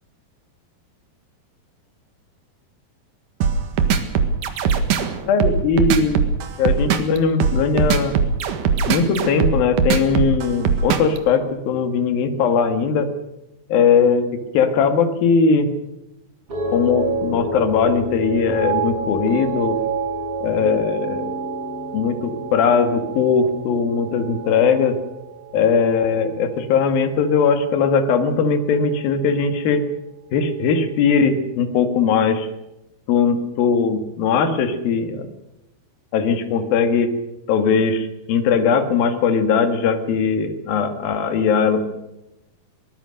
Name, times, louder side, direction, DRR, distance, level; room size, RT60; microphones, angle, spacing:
sound 1, 3.4-11.2, right 6 dB, 60° right, 3.0 m, -19 dB
voice 1, 5.3-6.3 6.6-8.2 8.9-13.1 13.7-15.7 16.7-19.8 20.4-21.3 21.9-25.0 25.5-29.8 30.3-32.5 33.1-35.3 36.1-37.1 37.5-41.8, left 5 dB, 70° left, 8 dB, 3.5 m, -19 dB
sound 2, 16.5-26.9 27.2-27.7, right 3 dB, 35° right, 7.3 m, -29 dB
23.5 x 19.0 x 6.5 m, 0.91 s
omnidirectional pair, 4.4 m